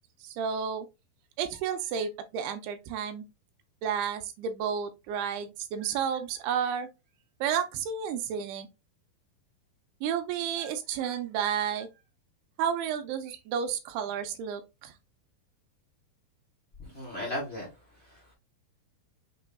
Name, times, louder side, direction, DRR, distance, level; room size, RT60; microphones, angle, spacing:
voice 1, 0.2-0.9 1.4-3.2 3.8-6.9 7.4-8.7 10.0-11.9 12.6-14.9, right 8 dB, 80° right, 2.6 m, -31 dB
voice 2, 16.8-17.7 17.9-18.3, left 1 dB, 65° left, 0.6 m, -36 dB
6.6 x 3.2 x 2.2 m
omnidirectional pair, 4.6 m